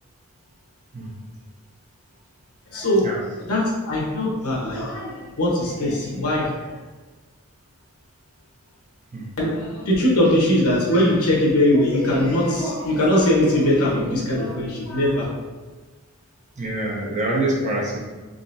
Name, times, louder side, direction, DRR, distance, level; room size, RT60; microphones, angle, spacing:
voice 1, 2.7-3.1 3.4-6.8 9.4-15.3, left 1 dB, 85° left, -4 dB, 1.2 m, -21 dB
voice 2, 16.6-18.0, right 1 dB, 35° right, -3 dB, 0.7 m, -25 dB
3.9 x 3.4 x 2.7 m, 1.3 s
head